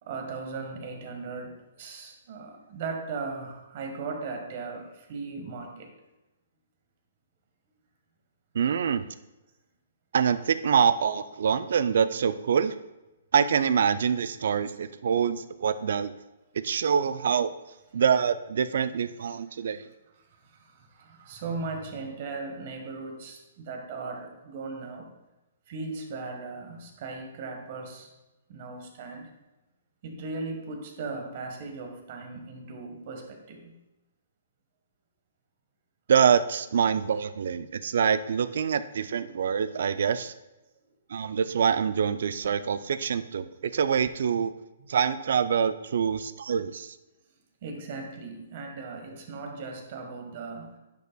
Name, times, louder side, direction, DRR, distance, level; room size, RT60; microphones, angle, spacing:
voice 1, 0.0-5.9 20.2-25.1 25.7-28.1 28.5-29.3 30.0-33.8 44.8-44.9 47.6-50.8, right 3 dB, 50° right, 3 dB, 1.4 m, -38 dB
voice 2, 8.5-9.0 10.1-12.8 13.3-16.1 16.5-17.5 17.9-19.8 36.1-40.3 41.1-44.5 44.9-47.0, right 7 dB, 65° right, 14 dB, 0.4 m, -25 dB
10.0 x 5.6 x 2.3 m, 1.0 s
hypercardioid pair, 135°, 0 cm